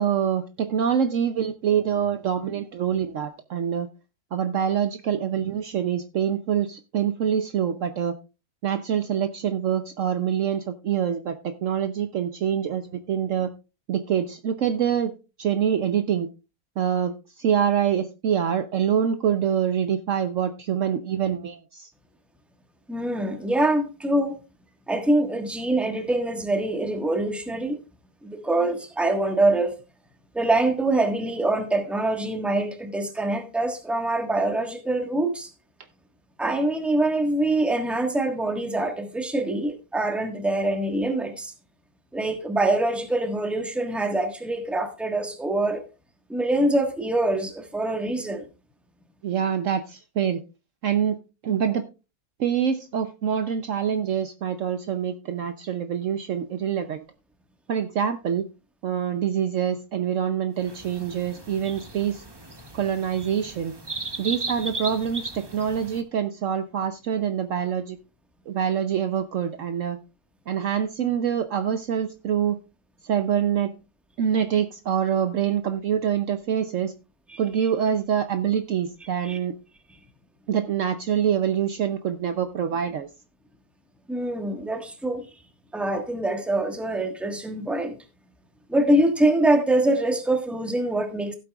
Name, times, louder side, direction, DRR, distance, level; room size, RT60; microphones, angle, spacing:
voice 1, 0.0-3.9 4.3-8.1 8.6-13.5 13.9-15.1 15.4-16.3 16.8-21.9 49.2-50.4 50.8-51.2 51.4-51.8 52.4-57.0 57.7-58.5 58.8-62.2 62.7-63.7 64.2-68.0 68.5-70.0 70.5-72.6 73.0-73.7 74.2-76.9 77.4-79.5 80.5-83.1, right 8 dB, 60° right, 1.0 m, -25 dB
voice 2, 22.9-24.4 24.9-27.8 28.2-29.7 30.3-35.5 36.4-41.5 42.1-45.9 46.3-48.4 77.3-77.4 79.2-79.4 84.1-85.3 85.7-88.0 88.7-91.3, right 1 dB, ahead, 1.2 m, -24 dB
sound 1, 60.6-66.0, right 3 dB, 20° right, 0.9 m, -36 dB
16.0 x 8.5 x 2.3 m
omnidirectional pair, 1.6 m